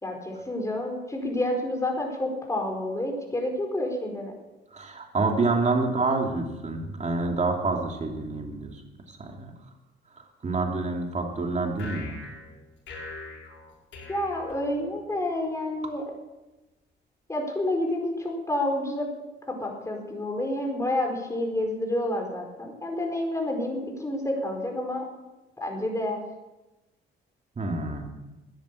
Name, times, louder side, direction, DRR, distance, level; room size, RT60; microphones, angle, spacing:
voice 1, 0.0-4.3 14.1-16.0 17.3-19.1 19.4-25.0 25.6-26.2, left 1 dB, 15° left, 1 dB, 4.7 m, -29 dB
voice 2, 4.7-8.8 9.1-9.5 10.4-12.2 27.6-28.1, right 3 dB, 35° right, 2 dB, 2.9 m, -27 dB
sound 1, 11.7-15.2, left 3 dB, 75° left, 5.5 m, -42 dB
14.0 x 10.5 x 8.5 m, 1.1 s
cardioid pair, 90°, 20 cm